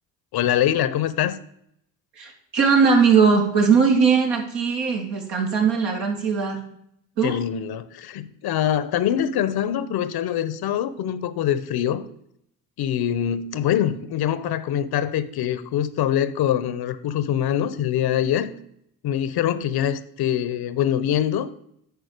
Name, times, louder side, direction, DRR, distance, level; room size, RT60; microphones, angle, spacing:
voice 1, 0.3-1.4 7.2-12.0 12.8-18.5 19.0-21.5, left 10 dB, 55° left, 15 dB, 0.8 m, -24 dB
voice 2, 2.2-6.6 7.2-7.4, right 5 dB, 70° right, 0 dB, 2.5 m, -19 dB
10.0 x 4.4 x 6.6 m, 0.73 s
hypercardioid pair, 55°, 46 cm